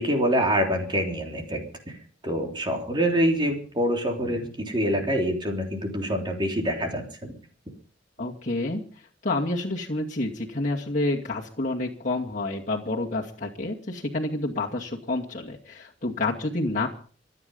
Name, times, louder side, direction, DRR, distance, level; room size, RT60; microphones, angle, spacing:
voice 1, 0.0-1.6 2.2-7.3, equal, 25° right, 2 dB, 3.4 m, -25 dB
voice 2, 8.2-8.8 9.2-16.9, left 2 dB, 45° left, -3 dB, 2.3 m, -29 dB
25.5 x 9.8 x 5.4 m, 0.42 s
head